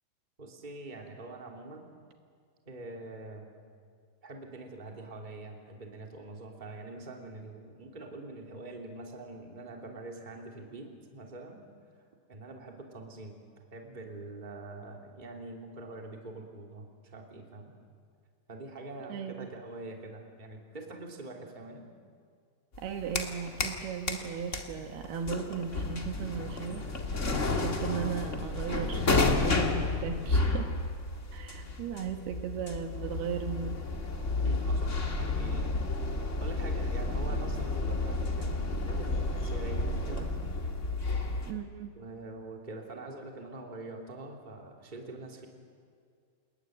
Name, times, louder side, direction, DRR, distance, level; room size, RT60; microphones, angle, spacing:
voice 1, 0.4-1.9 2.6-3.5 4.2-11.6 12.3-13.4 13.7-17.7 18.5-21.8 34.4-35.7 36.4-40.3 42.0-45.5, right 2 dB, 15° right, 1 dB, 2.5 m, -44 dB
voice 2, 19.1-19.5 22.8-27.2 27.5-30.8 31.3-33.8 41.5-41.9, right 7 dB, 70° right, 5 dB, 3.0 m, -37 dB
sound 1, 22.7-23.8 24.1-41.5, left 2 dB, 70° left, 0.7 m, -31 dB
28.5 x 21.0 x 9.4 m, 2.2 s
omnidirectional pair, 5.1 m